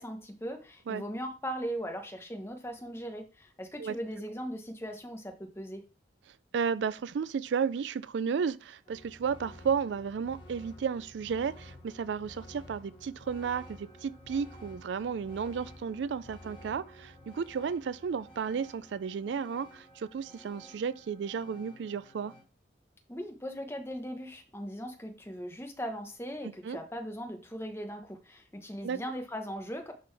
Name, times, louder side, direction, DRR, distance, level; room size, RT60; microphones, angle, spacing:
voice 1, 0.0-5.8 23.1-29.9, equal, 15° left, 1.0 m, -39 dB
voice 2, 6.5-22.3 26.6-26.8 28.8-29.0, right 6 dB, 75° right, 0.3 m, -33 dB
sound 1, 8.8-22.4, left 1 dB, 30° left, 2.5 m, -52 dB
11.0 x 3.8 x 3.3 m
head